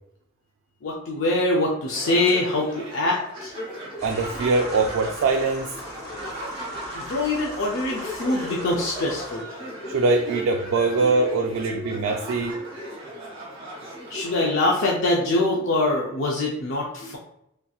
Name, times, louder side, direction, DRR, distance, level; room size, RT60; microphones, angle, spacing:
voice 1, 0.8-3.5 6.9-9.5 11.0-11.1 11.7-11.9 14.1-17.2, left 2 dB, 65° left, -2 dB, 0.4 m, -24 dB
sound 1, 1.9-14.7, equal, 25° right, 0.9 m, -37 dB
sound 2, 4.0-9.4, left 1 dB, 15° left, 0.7 m, -39 dB
voice 2, 4.0-5.7 9.9-12.6, right 3 dB, 85° right, 4 dB, 0.3 m, -22 dB
3.2 x 2.8 x 2.3 m, 0.77 s
head